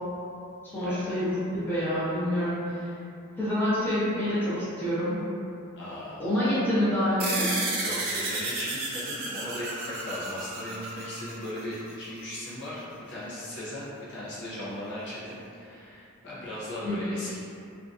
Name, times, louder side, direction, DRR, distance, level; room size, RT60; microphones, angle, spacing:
voice 1, 0.7-2.8 3.4-5.2 6.2-7.5 16.8-17.0, left 1 dB, 10° left, -12 dB, 0.7 m, -27 dB
voice 2, 5.8-6.3 7.8-17.4, left 1 dB, 50° left, -8 dB, 0.5 m, -37 dB
sound 1, 7.2-12.1, right 2 dB, 45° right, 0.5 m, -32 dB
2.6 x 2.2 x 2.5 m, 2.6 s
head